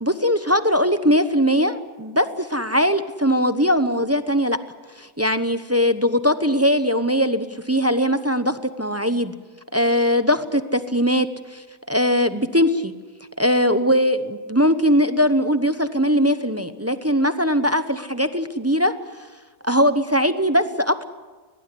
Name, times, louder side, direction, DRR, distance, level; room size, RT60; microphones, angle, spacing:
voice 1, 0.0-4.6 5.0-9.3 9.7-12.9 13.4-18.9 19.6-21.1, equal, 15° right, 11 dB, 0.6 m, -20 dB
23.0 x 19.0 x 9.8 m, 1.4 s
omnidirectional pair, 1.6 m